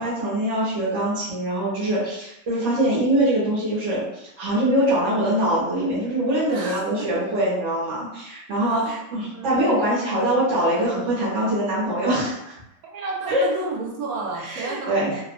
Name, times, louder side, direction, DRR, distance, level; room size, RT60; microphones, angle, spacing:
voice 1, 0.0-12.5 13.3-13.4 14.4-15.2, right 1 dB, 60° right, -10 dB, 1.1 m, -23 dB
voice 2, 6.5-7.2 8.6-8.9 9.3-9.9 12.9-15.2, right 3 dB, 85° right, -1 dB, 1.1 m, -32 dB
2.9 x 2.0 x 2.5 m, 0.84 s
omnidirectional pair, 1.5 m